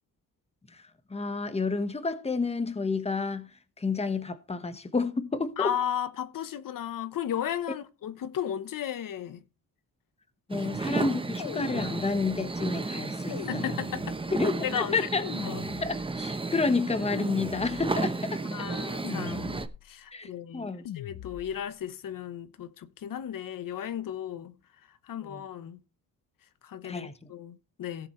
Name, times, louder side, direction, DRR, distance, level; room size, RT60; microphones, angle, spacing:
voice 1, 1.1-5.7 10.5-13.7 14.3-15.2 15.8-18.4 20.1-20.8 25.2-25.4 26.8-27.2, left 4 dB, 20° left, 1.3 m, -30 dB
voice 2, 5.6-9.4 10.6-10.7 13.5-14.2 14.6-15.1 15.5-15.6 18.5-24.5 25.0-25.8 26.6-28.1, left 10 dB, 70° left, 1.1 m, -35 dB
sound 1, 10.5-19.7, right 3 dB, 15° right, 0.9 m, -33 dB
sound 2, 11.4-12.6 13.3-14.5 15.2-16.3 17.1-18.1 19.0-20.0 20.8-21.7, left 11 dB, 90° left, 0.9 m, -42 dB
17.0 x 7.3 x 3.2 m
cardioid pair, 125°, 34 cm